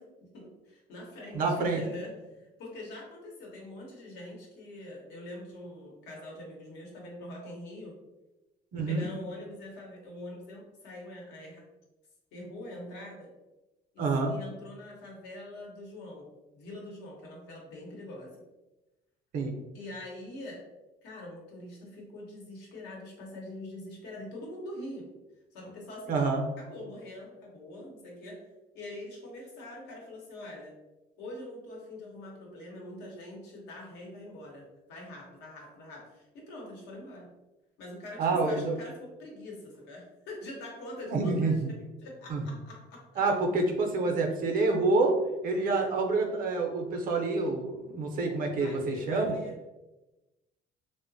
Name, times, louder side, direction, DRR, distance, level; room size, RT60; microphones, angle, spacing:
voice 1, 0.0-7.9 8.7-11.6 12.3-13.3 13.9-16.3 16.5-18.4 19.7-20.6 21.0-25.1 25.5-26.2 26.6-28.5 28.7-30.7 31.2-37.3 37.8-43.2 48.6-49.7, left 1 dB, 80° left, -1 dB, 0.9 m, -44 dB
voice 2, 1.3-1.8 8.7-9.1 14.0-14.3 19.3-19.5 26.1-26.4 38.2-38.7 41.1-41.7 42.3-42.4 43.2-45.2 45.4-49.4, right 3 dB, 55° right, 2 dB, 0.6 m, -27 dB
2.9 x 2.1 x 2.6 m, 1.0 s
cardioid pair, 110°, 17 cm